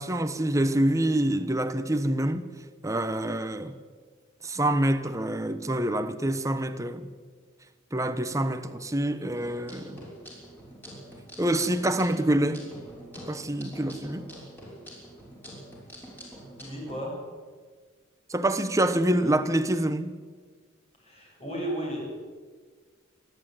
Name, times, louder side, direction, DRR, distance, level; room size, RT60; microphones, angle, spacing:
voice 1, 0.0-2.5 2.8-3.8 4.4-7.1 7.9-10.1 11.4-12.6 13.3-14.3 18.3-20.2, right 1 dB, 15° right, 1.2 m, -26 dB
sound 1, 9.3-16.9, equal, 10° left, 6.1 m, -45 dB
voice 2, 16.6-17.2 21.0-22.0, right 1 dB, 30° left, 7.7 m, -34 dB
27.0 x 11.5 x 9.4 m
head